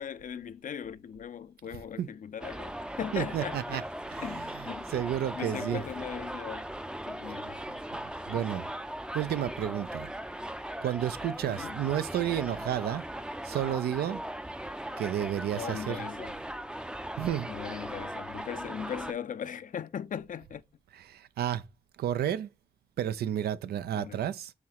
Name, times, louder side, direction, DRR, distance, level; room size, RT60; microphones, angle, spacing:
voice 1, 0.0-3.9 4.2-4.9 5.3-6.7 7.1-7.8 8.2-8.5 11.4-11.8 15.5-16.4 17.4-20.6 23.9-24.2, left 8 dB, 55° left, 0.4 m, -39 dB
Subway metro underground, 2.4-19.1, right 1 dB, 5° right, 0.4 m, -39 dB
voice 2, 3.1-3.8 4.1-4.6 4.9-5.8 8.3-8.7 9.1-10.1 10.8-13.1 13.4-14.2 15.0-16.0 17.2-17.5 21.0-21.6 22.0-22.5 23.0-24.5, right 10 dB, 85° right, 0.4 m, -31 dB
5.7 x 3.2 x 2.8 m
supercardioid pair, 50°, 16 cm